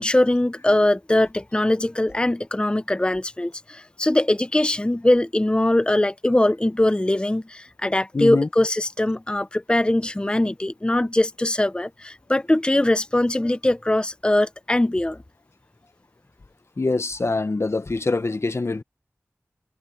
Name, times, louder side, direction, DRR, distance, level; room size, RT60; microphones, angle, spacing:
voice 1, 0.0-15.2, left 1 dB, 20° left, 0.6 m, -21 dB
voice 2, 8.1-8.5 16.8-18.8, left 3 dB, 55° left, 0.9 m, -24 dB
wide cardioid pair, 50°, 5 cm